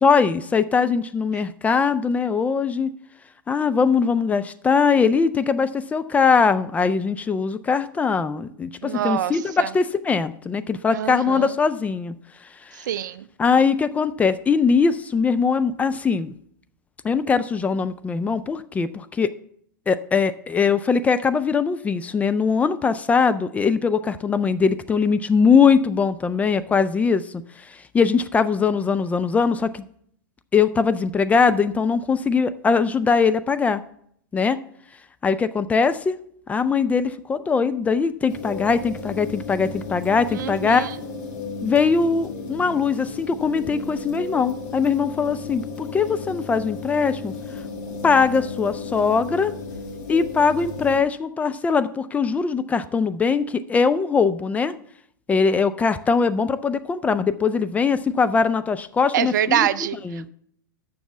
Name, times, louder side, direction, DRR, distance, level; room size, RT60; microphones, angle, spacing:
voice 1, 0.0-2.9 3.5-12.1 12.6-12.9 13.4-16.3 17.0-19.3 19.9-29.8 30.5-33.8 34.3-34.6 35.2-36.2 36.5-40.9 41.6-47.3 48.0-49.5 50.1-54.7 55.3-59.7 60.0-60.3, left 5 dB, 15° left, 12 dB, 0.3 m, -21 dB
voice 2, 8.8-9.7 10.9-11.5 12.7-13.3 40.3-40.9 59.1-60.3, right 11 dB, 60° right, 16 dB, 0.5 m, -25 dB
sound 1, 38.3-51.0, left 4 dB, 45° left, 1.8 m, -34 dB
7.1 x 6.1 x 6.9 m, 0.67 s
figure-of-eight pair, 100°, 11 cm